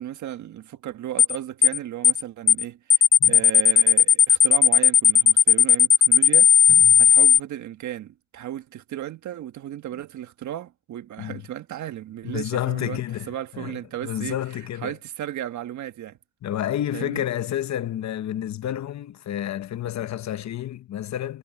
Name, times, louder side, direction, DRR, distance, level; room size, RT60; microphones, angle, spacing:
voice 1, 0.0-6.5 7.0-13.0 13.3-14.4 14.8-16.2 16.9-17.2, right 12 dB, 70° right, 1.6 m, -35 dB
sound 1, 1.2-1.4 1.6-1.8 2.0-2.2 2.5-2.6 2.9-7.4, left 8 dB, 25° left, 0.3 m, -15 dB
voice 2, 6.7-7.1 11.2-11.4 12.2-15.0 16.4-21.4, left 11 dB, 65° left, 1.2 m, -30 dB
cardioid pair, 90°, 30 cm